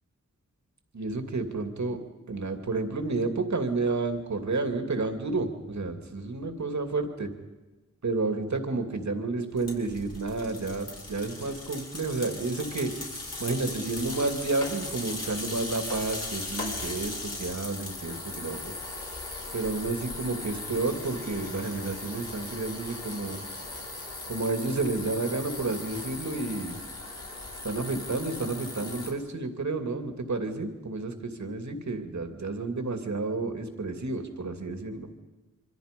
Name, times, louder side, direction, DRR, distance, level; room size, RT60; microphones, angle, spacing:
voice 1, 0.9-2.0 2.3-7.3 8.0-12.9 13.4-18.7 19.5-23.4 24.3-26.8 27.6-35.1, right 3 dB, 65° right, 6 dB, 2.5 m, -31 dB
sound 1, 9.5-29.1, left 2 dB, 50° left, 5.6 m, -38 dB
26.0 x 24.5 x 5.3 m, 1.2 s
wide cardioid pair, 90°, 31 cm